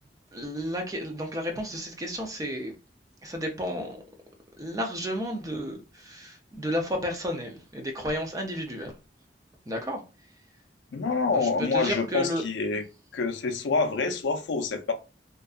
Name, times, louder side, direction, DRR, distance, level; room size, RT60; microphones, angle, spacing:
voice 1, 0.3-2.7 3.2-4.0 4.6-8.9 9.7-10.0 11.3-12.4, equal, 20° right, 0.4 m, -32 dB
voice 2, 10.9-12.8 13.1-14.9, left 4 dB, 85° left, 0.4 m, -27 dB
2.6 x 2.2 x 2.3 m
head